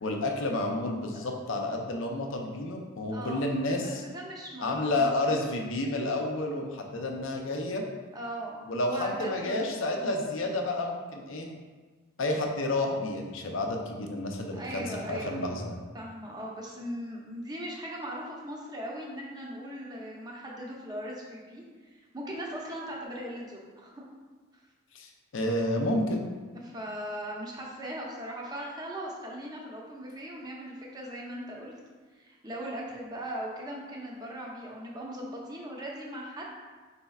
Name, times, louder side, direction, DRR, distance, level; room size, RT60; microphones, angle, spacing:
voice 1, 0.0-4.0 4.6-7.8 8.7-11.5 12.2-15.8 24.9-26.3, left 2 dB, 65° left, 2 dB, 0.6 m, -30 dB
voice 2, 3.1-3.5 3.7-5.5 8.1-10.2 14.5-15.4 15.9-21.6 21.9-24.1 26.6-31.7 32.1-36.5, equal, 20° right, -3 dB, 0.7 m, -39 dB
5.3 x 4.1 x 2.3 m, 1.4 s
head